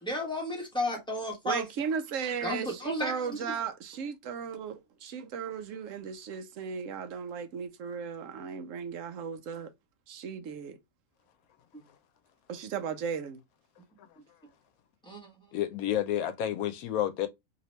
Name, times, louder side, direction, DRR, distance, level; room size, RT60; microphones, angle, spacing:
voice 1, 0.0-1.6 2.4-3.5 15.0-15.3, left 1 dB, 5° left, 1.0 m, -33 dB
voice 2, 1.4-9.7 10.1-10.8 12.5-13.4, right 6 dB, 70° right, 0.9 m, -36 dB
voice 3, 15.5-17.3, left 11 dB, 80° left, 1.0 m, -30 dB
2.9 x 2.8 x 3.0 m
omnidirectional pair, 1.5 m